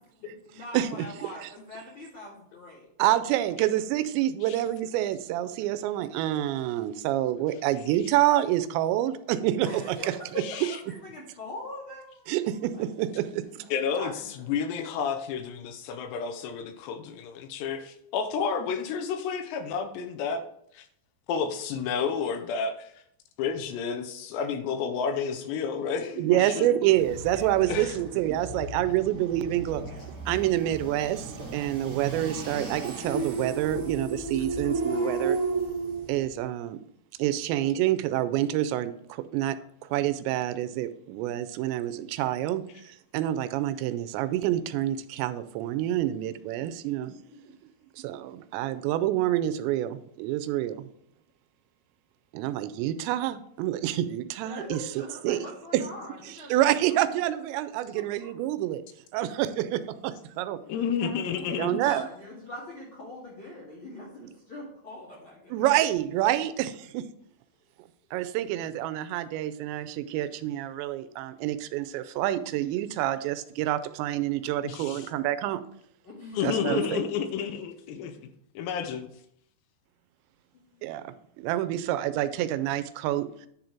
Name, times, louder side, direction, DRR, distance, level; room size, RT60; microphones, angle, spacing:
voice 1, 0.1-2.9 9.6-13.3 13.9-14.5 26.1-26.4 27.6-27.8 54.4-57.4 57.9-58.4 60.9-65.6 76.0-76.4 76.7-76.8 80.5-80.8, left 1 dB, 45° left, -5 dB, 1.7 m, -43 dB
voice 2, 3.0-9.7 10.3-10.4 12.3-13.7 26.2-29.8 30.3-35.4 36.1-36.8 37.2-39.6 39.9-47.1 48.0-50.9 52.3-55.4 55.7-55.9 56.2-58.8 59.1-60.6 61.6-62.1 64.2-64.3 65.5-67.1 68.1-75.6 76.4-77.0 80.8-81.0 81.4-83.3, right 13 dB, 85° right, 13 dB, 2.8 m, -27 dB
voice 3, 10.4-10.8 13.7-20.4 20.7-20.9 21.3-22.9 23.4-26.7 27.7-28.0 60.7-62.0 74.6-75.1 76.3-78.1 78.6-79.1, left 6 dB, 80° left, 7 dB, 2.7 m, -31 dB
sound 1, 26.9-36.3, right 3 dB, 45° right, 1.9 m, -34 dB
10.0 x 3.9 x 4.4 m, 0.70 s
omnidirectional pair, 5.1 m